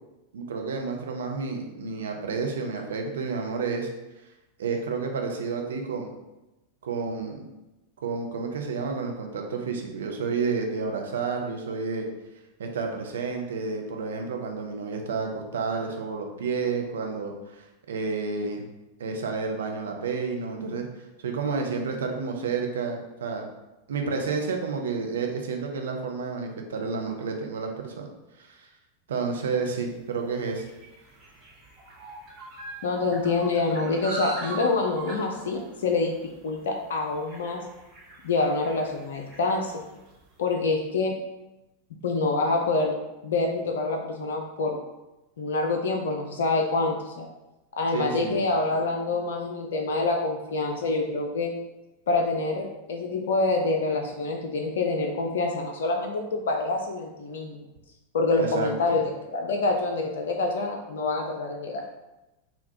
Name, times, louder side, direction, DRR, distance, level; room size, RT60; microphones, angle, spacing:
voice 1, 0.3-3.9 4.6-6.1 6.8-7.5 8.0-12.1 12.6-18.6 19.0-20.9 21.2-23.5 23.9-28.1 28.4-28.7 29.1-30.7 47.9-48.4 58.4-58.7, right 4 dB, 65° right, 3 dB, 0.5 m, -30 dB
sound 1, 29.8-40.4, right 3 dB, 30° right, 0.7 m, -42 dB
voice 2, 32.8-36.1 36.4-37.6 38.2-39.8 40.4-41.1 42.0-42.9 43.2-44.8 45.4-47.3 47.8-51.5 52.1-57.7 58.1-61.8, left 3 dB, 60° left, 2 dB, 0.3 m, -26 dB
3.8 x 2.2 x 2.7 m, 1.0 s
figure-of-eight pair, 90°, 0 cm